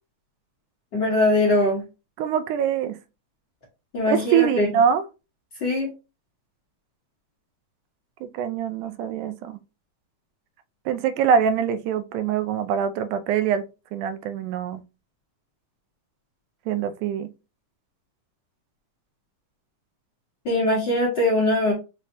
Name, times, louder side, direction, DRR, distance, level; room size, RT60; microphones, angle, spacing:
voice 1, 0.9-1.8 3.9-4.7 5.6-5.9 20.4-21.7, left 1 dB, 50° left, 1.4 m, -21 dB
voice 2, 2.2-3.0 4.1-5.0 8.2-9.6 10.9-14.8 16.7-17.3, right 8 dB, 85° right, 2.0 m, -24 dB
5.4 x 3.2 x 2.6 m
omnidirectional pair, 3.5 m